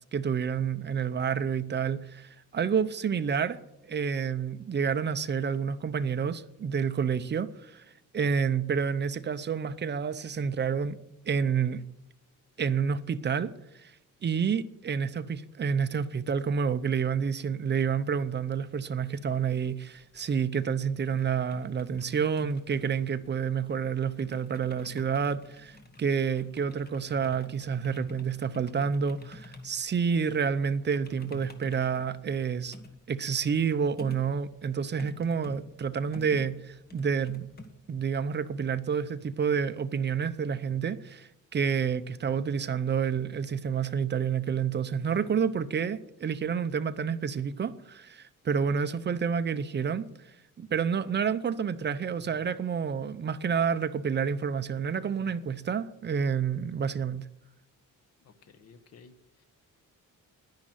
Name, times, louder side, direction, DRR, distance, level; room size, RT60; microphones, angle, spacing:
voice 1, 0.1-3.6 3.9-7.8 8.1-11.0 11.3-11.8 12.6-13.9 14.2-32.7 33.1-37.5 37.9-50.1 50.6-57.3, right 6 dB, 35° right, 0.7 m, -29 dB
sound 1, 19.9-37.7, left 2 dB, 30° left, 1.5 m, -49 dB
voice 2, 58.2-59.4, left 5 dB, 50° left, 1.1 m, -55 dB
10.5 x 10.5 x 9.1 m
wide cardioid pair, 165°, 32 cm